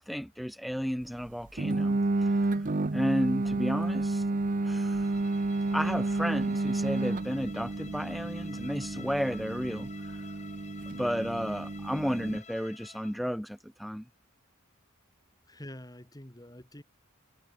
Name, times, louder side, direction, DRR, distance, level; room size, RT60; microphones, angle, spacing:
voice 1, 0.0-4.2 4.6-5.1 5.7-10.2 10.9-14.1, equal, ahead, 0.3 m, -33 dB
sound 1, 1.6-12.4, right 2 dB, 40° right, 0.7 m, -31 dB
Bowed string instrument, 4.9-13.3, left 6 dB, 35° left, 7.8 m, -51 dB
voice 2, 15.5-16.8, left 1 dB, 20° left, 2.8 m, -46 dB
head